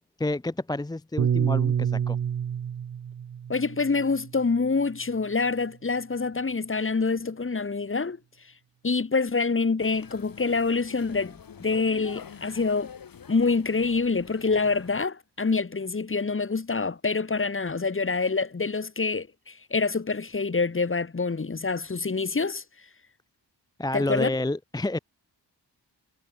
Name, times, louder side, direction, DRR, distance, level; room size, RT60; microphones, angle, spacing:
voice 1, 0.2-2.2 23.8-25.0, left 2 dB, 10° left, 0.5 m, -29 dB
Piano, 1.2-5.6, right 8 dB, 40° right, 0.6 m, -29 dB
voice 2, 3.5-8.2 8.8-12.9 13.3-22.6 23.9-24.3, left 4 dB, 30° left, 1.3 m, -26 dB
sound 1, 9.8-15.1, left 7 dB, 50° left, 1.3 m, -46 dB
cardioid pair, 55°, 43 cm